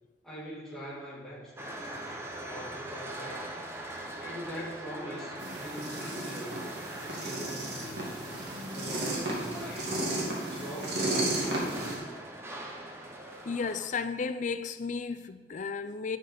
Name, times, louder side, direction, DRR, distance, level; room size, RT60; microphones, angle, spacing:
voice 1, 0.2-1.5 2.4-3.5 4.2-6.6 7.0-8.1 8.7-10.2 10.5-12.0, equal, ahead, 2.4 m, -42 dB
Industrial lift, 1.6-13.9, right 1 dB, 15° right, 1.1 m, -42 dB
sound 1, 5.4-12.0, right 1 dB, 65° right, 2.5 m, -34 dB
voice 2, 13.5-16.2, left 5 dB, 45° left, 0.5 m, -34 dB
11.5 x 5.1 x 5.9 m
head